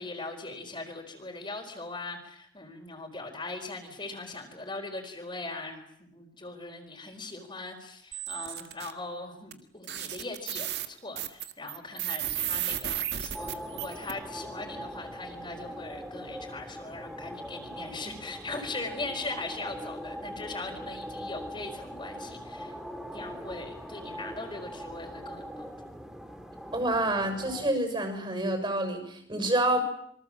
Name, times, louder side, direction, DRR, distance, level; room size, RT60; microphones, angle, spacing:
voice 1, 0.0-22.7 23.1-25.7, left 3 dB, 25° left, 1 dB, 4.5 m, -40 dB
sound 1, 8.1-8.9 9.5-9.6 9.8-14.1, right 11 dB, 65° right, 1.9 m, -34 dB
sound 2, 13.3-27.7, equal, 5° right, 2.4 m, -41 dB
voice 2, 26.7-29.8, right 1 dB, 25° right, 6 dB, 6.7 m, -28 dB
27.0 x 24.5 x 7.5 m, 0.69 s
head